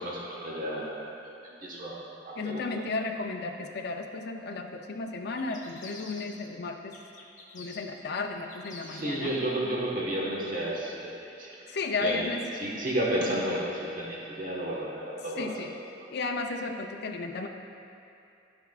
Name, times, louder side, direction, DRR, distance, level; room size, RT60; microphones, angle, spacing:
voice 1, 0.0-1.3 1.6-2.7 8.8-15.6, right 1 dB, 50° right, -4 dB, 1.3 m, -32 dB
voice 2, 2.4-7.0 7.5-9.3 11.7-12.5 15.4-15.7 16.1-17.5, left 3 dB, 60° left, 3 dB, 0.5 m, -33 dB
sound 1, 5.4-6.6 6.9-9.2, left 3 dB, 45° left, 1.0 m, -48 dB
13.5 x 6.0 x 2.4 m, 2.7 s
head